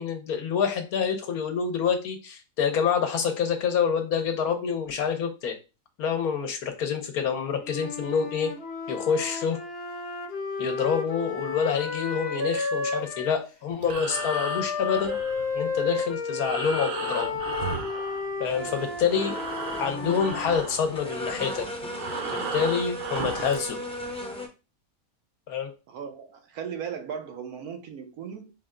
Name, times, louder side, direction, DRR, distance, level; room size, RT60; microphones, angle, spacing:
voice 1, 0.0-5.6 6.0-8.5 8.9-9.6 10.6-15.2 15.5-17.4 18.4-19.4 19.8-21.7 22.5-23.8 25.5-25.7, left 7 dB, 85° left, 1.3 m, -27 dB
Wind instrument woodwind instrument, 7.6-13.4 14.1-20.6, left 4 dB, 50° left, 1.0 m, -32 dB
Breathing, 13.7-18.7 19.0-23.7, right 5 dB, 65° right, 0.5 m, -36 dB
sound 1, 18.4-24.5, equal, 5° left, 0.5 m, -36 dB
voice 2, 25.9-28.5, right 7 dB, 85° right, 1.3 m, -37 dB
4.2 x 2.2 x 3.6 m
omnidirectional pair, 1.5 m